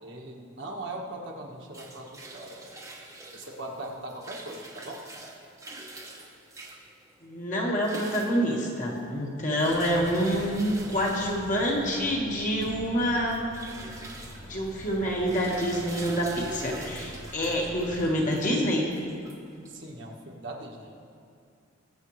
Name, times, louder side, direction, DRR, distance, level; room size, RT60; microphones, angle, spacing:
voice 1, 0.0-2.7 3.3-5.0 19.7-21.0, right 1 dB, 60° right, -1 dB, 1.5 m, -40 dB
sound 1, 1.5-20.0, right 2 dB, 15° right, 1.0 m, -45 dB
voice 2, 7.2-13.5 14.5-18.9, equal, 35° left, -2 dB, 1.6 m, -27 dB
sound 2, 9.7-18.1, equal, 80° left, 3.3 m, -45 dB
22.0 x 7.4 x 3.2 m, 2.4 s
head